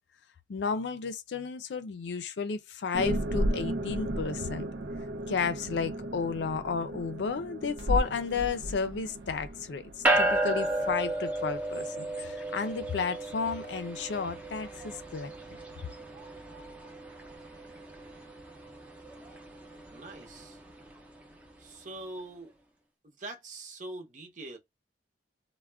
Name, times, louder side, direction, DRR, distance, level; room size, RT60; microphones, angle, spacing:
voice 1, 0.5-4.7 5.3-15.3, left 5 dB, 75° left, 0.4 m, -32 dB
sound 1, 2.9-10.9, right 1 dB, 85° right, 0.6 m, -34 dB
sound 2, 10.0-21.6, right 1 dB, 10° right, 0.5 m, -34 dB
voice 2, 17.1-18.4 19.9-20.6 21.6-22.5 23.0-24.6, right 2 dB, 45° right, 0.8 m, -45 dB
2.4 x 2.1 x 3.4 m
head